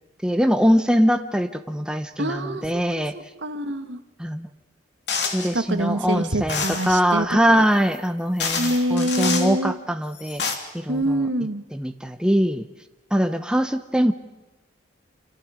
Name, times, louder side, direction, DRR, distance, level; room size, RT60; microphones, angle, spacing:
voice 1, 0.2-3.1 4.2-4.5 5.3-11.3 11.7-12.7 13.1-14.1, equal, 5° right, 7 dB, 1.0 m, -22 dB
voice 2, 2.2-2.7 3.0-3.1 3.4-4.0 5.5-7.7 8.6-9.8 10.9-11.6, right 1 dB, 75° right, 8 dB, 1.8 m, -25 dB
sound 1, 5.1-5.5 6.5-6.9 7.9-8.0 8.4-9.5 10.1-10.5, left 5 dB, 60° left, 3.0 m, -27 dB
29.5 x 26.5 x 5.2 m, 1.1 s
head